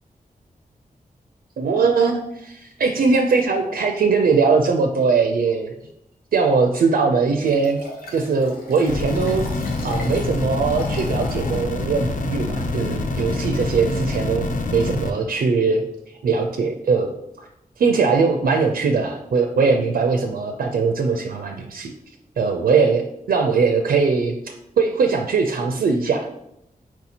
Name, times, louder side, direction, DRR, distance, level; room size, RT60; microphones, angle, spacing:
voice 1, 1.6-5.7 6.3-7.8 8.1-9.5 9.8-17.5 17.8-21.9 22.4-26.3, right 4 dB, 80° right, 5 dB, 0.4 m, -21 dB
Liquid, 7.5-11.6 12.1-12.2, left 1 dB, 85° left, 1.0 m, -41 dB
sound 1, 8.9-15.1, left 2 dB, 60° left, 0.5 m, -26 dB
4.4 x 2.8 x 4.1 m, 0.81 s
wide cardioid pair, 115°, 15 cm